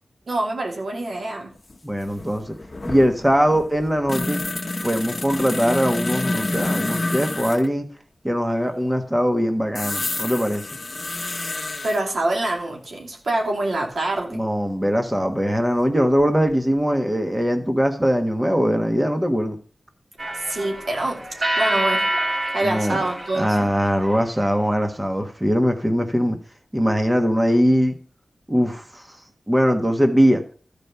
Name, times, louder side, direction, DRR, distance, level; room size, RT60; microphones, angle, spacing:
voice 1, 0.3-1.5 11.8-14.4 20.3-21.2 21.6-22.0 22.5-23.7, right 2 dB, 85° right, 0 dB, 2.7 m, -25 dB
sound 1, 1.7-1.8 2.0-7.7 9.7-12.0 14.2-14.3 15.8-16.5 16.8-16.9, left 2 dB, 40° left, 1.2 m, -28 dB
voice 2, 1.8-2.5 2.8-4.4 4.8-7.9 8.2-10.6 14.3-19.5 22.6-23.0 23.3-26.4 26.7-27.9 28.5-29.1 29.5-30.4, equal, 10° right, 5 dB, 1.4 m, -21 dB
sound 2, 20.2-24.5, right 1 dB, 65° right, 3.7 m, -27 dB
13.5 x 5.2 x 6.9 m, 0.40 s
wide cardioid pair, 105°, 0 cm